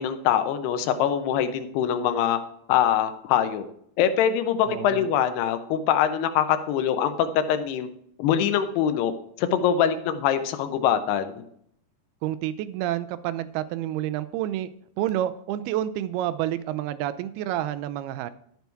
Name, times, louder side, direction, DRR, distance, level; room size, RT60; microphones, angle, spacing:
voice 1, 0.0-2.4 2.7-3.6 4.0-7.9 8.2-9.1 9.4-11.4, left 9 dB, 80° left, 9 dB, 2.9 m, -23 dB
voice 2, 4.7-5.1 12.2-14.7 15.0-18.3, right 12 dB, 80° right, 13 dB, 2.5 m, -29 dB
12.5 x 7.0 x 4.6 m, 0.68 s
omnidirectional pair, 4.7 m